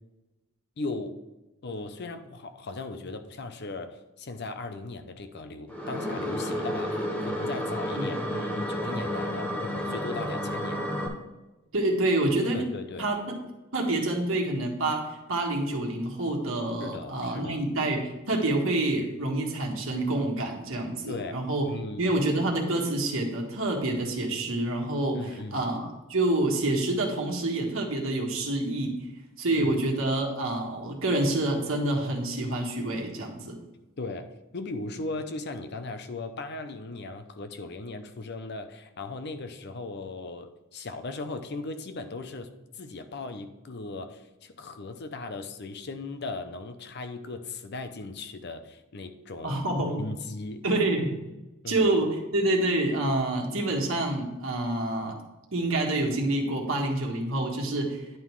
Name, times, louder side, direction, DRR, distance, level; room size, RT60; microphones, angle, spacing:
voice 1, 0.8-1.2 1.6-10.9 12.5-13.1 16.8-17.6 21.1-21.4 21.6-22.1 25.2-25.7 29.5-29.7 34.0-42.5 42.8-49.6 50.0-50.6 51.6-51.9, left 3 dB, 55° left, 9 dB, 0.6 m, -38 dB
sound 1, 5.7-11.1, equal, 5° left, 1.0 m, -31 dB
voice 2, 11.7-12.7 13.0-13.2 13.7-21.7 22.0-29.0 29.4-33.6 49.4-50.0 50.6-51.2 51.7-55.2 55.5-58.0, right 2 dB, 70° right, 1 dB, 1.5 m, -27 dB
10.5 x 3.8 x 4.7 m, 1.0 s
head